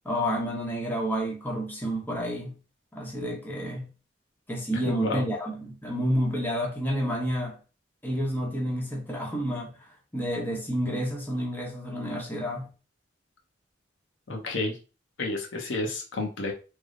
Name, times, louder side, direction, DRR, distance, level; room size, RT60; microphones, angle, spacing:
voice 1, 0.0-2.5 2.9-3.9 4.5-7.5 8.0-9.7 10.1-12.7, equal, 10° left, 0.8 m, -29 dB
voice 2, 4.9-5.2 14.3-14.8 15.2-16.5, left 2 dB, 75° left, 0.8 m, -30 dB
3.3 x 2.0 x 3.7 m
head